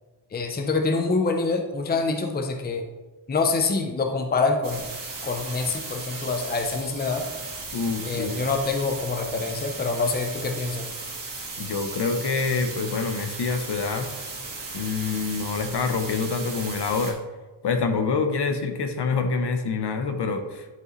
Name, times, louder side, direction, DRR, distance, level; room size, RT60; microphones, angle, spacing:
voice 1, 0.3-2.8 3.3-4.8 5.2-7.3 8.0-10.9, left 3 dB, 20° left, 4 dB, 0.6 m, -26 dB
sound 1, 4.6-17.1, right 3 dB, 45° right, 1.9 m, -36 dB
voice 2, 7.7-8.4 11.6-14.1 14.7-17.2 17.6-20.7, left 4 dB, 60° left, 6 dB, 0.8 m, -26 dB
10.5 x 5.4 x 3.1 m, 1.2 s
wide cardioid pair, 160°, 46 cm